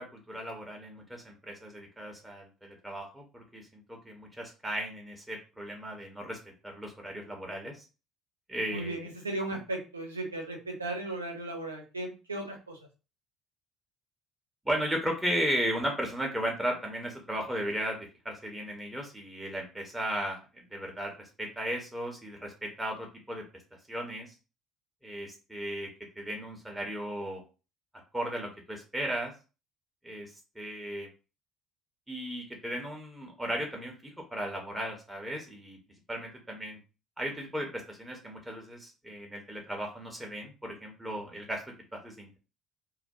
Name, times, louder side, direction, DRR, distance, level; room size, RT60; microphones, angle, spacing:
voice 1, 0.0-7.8 8.5-9.1 9.5-9.6 14.6-18.0 18.2-23.4 23.9-24.3 25.0-25.9 26.2-27.4 28.1-29.3 30.0-31.1 32.1-33.9 34.3-35.8 36.1-36.8 37.2-41.6 41.9-42.4, equal, 10° right, 1 dB, 0.7 m, -35 dB
voice 2, 8.7-12.8, right 2 dB, 85° right, 1 dB, 0.5 m, -36 dB
2.3 x 2.1 x 2.7 m, 0.32 s
figure-of-eight pair, 55°, 0 cm